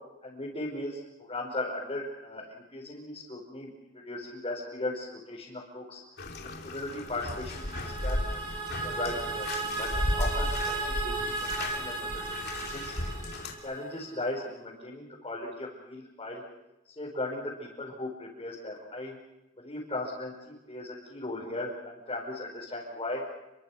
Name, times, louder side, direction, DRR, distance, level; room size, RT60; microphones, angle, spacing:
voice 1, 0.2-6.0 6.4-8.2 8.8-11.1 11.7-12.2 12.6-12.9 13.6-16.4 17.0-19.2 19.6-23.2, left 2 dB, 25° left, -5 dB, 5.3 m, -37 dB
Bathtub (filling or washing), 6.2-13.5, left 1 dB, 55° left, 2.9 m, -35 dB
sound 1, 6.9-14.1, right 3 dB, 25° right, 7.4 m, -35 dB
29.5 x 23.5 x 6.5 m, 0.96 s
head